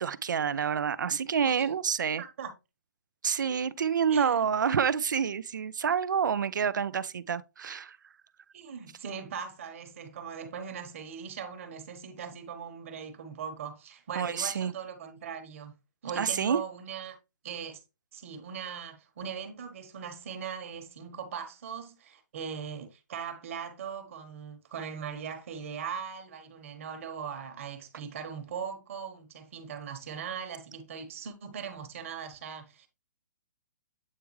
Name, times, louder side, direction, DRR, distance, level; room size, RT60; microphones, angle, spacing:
voice 1, 0.0-2.2 3.2-8.0 14.2-14.7 16.2-16.6, right 7 dB, 90° right, 0.5 m, -28 dB
voice 2, 2.2-2.5 4.1-4.4 8.5-15.8 16.0-17.2 17.4-17.8 18.1-32.9, right 7 dB, 45° right, 1.2 m, -40 dB
8.5 x 3.5 x 3.1 m
hypercardioid pair, 165°, 10 cm